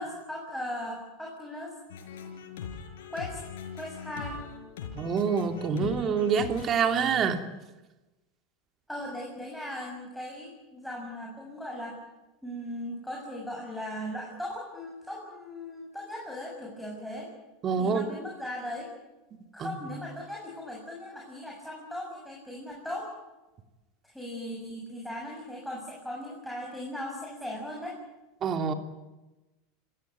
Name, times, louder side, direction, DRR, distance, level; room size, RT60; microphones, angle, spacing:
voice 1, 0.0-1.8 3.1-3.4 3.7-4.4 8.9-12.0 12.4-17.3 17.8-18.9 19.5-23.1 24.0-28.0, left 1 dB, ahead, -2 dB, 7.2 m, -38 dB
sound 1, 1.9-7.3, left 7 dB, 75° left, 5.4 m, -41 dB
voice 2, 5.0-7.4 17.6-18.1 19.6-19.7 28.4-28.7, right 6 dB, 35° right, 7 dB, 2.8 m, -26 dB
26.5 x 16.5 x 9.5 m, 1.1 s
hypercardioid pair, 95°, 0 cm